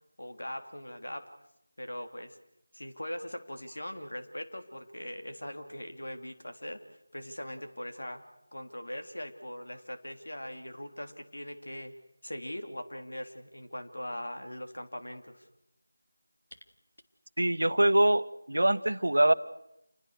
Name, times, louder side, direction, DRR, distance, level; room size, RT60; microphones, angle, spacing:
voice 1, 0.2-1.3 1.8-2.4 2.7-8.2 8.5-11.9 12.2-15.5, left 1 dB, 75° left, 6 dB, 3.4 m, -41 dB
voice 2, 17.4-19.3, right 1 dB, 75° right, 13 dB, 1.2 m, -24 dB
28.5 x 21.0 x 6.6 m, 0.82 s
figure-of-eight pair, 170°, 0 cm